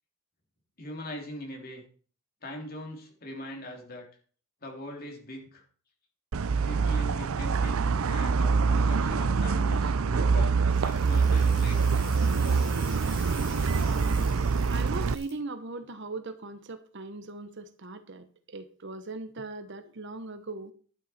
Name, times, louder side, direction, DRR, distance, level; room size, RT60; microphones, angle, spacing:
voice 1, 0.8-1.8 2.4-4.1 4.6-5.6 6.6-12.0, left 1 dB, 45° left, 1 dB, 3.2 m, -41 dB
sound 1, 6.3-15.2, right 5 dB, 75° right, 0.5 m, -25 dB
sound 2, 10.7-15.3, left 2 dB, 20° left, 5.2 m, -46 dB
voice 2, 13.8-14.3 14.7-20.7, right 3 dB, 55° right, 11 dB, 1.1 m, -39 dB
11.5 x 9.9 x 4.4 m, 0.43 s
head